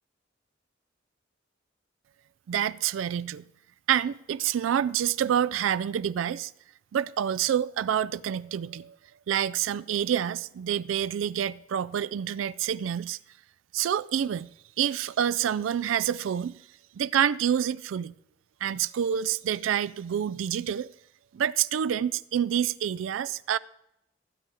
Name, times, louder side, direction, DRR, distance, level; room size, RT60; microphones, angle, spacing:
voice 1, 2.5-3.4 3.9-6.5 6.9-8.9 9.3-13.2 13.7-14.5 14.8-16.6 17.0-18.1 18.6-20.9 21.3-23.6, right 9 dB, 80° right, 0.3 m, -27 dB
15.5 x 9.0 x 3.5 m
head